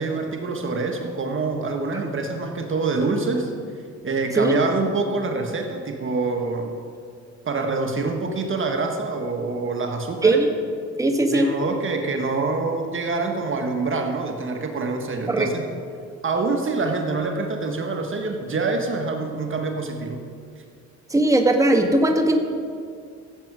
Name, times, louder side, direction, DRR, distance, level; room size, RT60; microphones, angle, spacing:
voice 1, 0.0-3.5 4.0-6.8 7.4-10.4 11.3-15.6 16.2-20.2, right 3 dB, 40° right, 3 dB, 1.5 m, -26 dB
voice 2, 11.0-11.5 15.3-15.5 21.1-22.4, right 2 dB, 10° right, 3 dB, 1.5 m, -18 dB
16.0 x 7.9 x 6.2 m, 2.2 s
cardioid pair, 90°, 30 cm